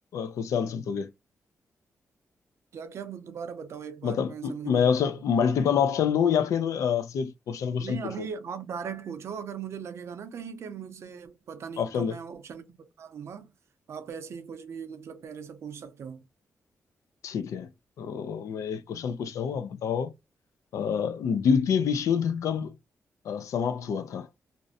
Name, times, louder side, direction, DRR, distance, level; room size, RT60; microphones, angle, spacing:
voice 1, 0.1-1.1 4.0-8.3 11.8-12.2 17.2-17.7 18.0-20.1 20.7-22.7 23.3-24.3, left 7 dB, 85° left, 0.4 m, -27 dB
voice 2, 2.7-4.9 7.8-13.5 13.9-16.2, right 7 dB, 60° right, 0.5 m, -39 dB
2.5 x 2.0 x 2.6 m
wide cardioid pair, 170°, 5 cm